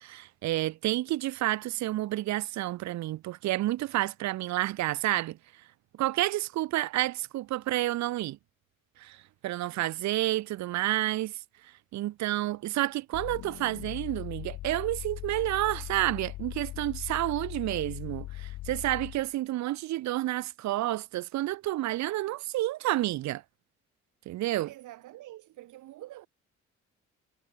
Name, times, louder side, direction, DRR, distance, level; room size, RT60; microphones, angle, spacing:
voice 1, 0.0-5.4 6.0-8.4 9.0-11.4 11.9-23.4 24.3-24.7, right 16 dB, 65° right, 0.6 m, -30 dB
sound 1, 13.1-19.3, left 16 dB, 85° left, 1.3 m, -40 dB
voice 2, 24.6-26.3, right 15 dB, 85° right, 1.5 m, -46 dB
cardioid pair, 90°, 30 cm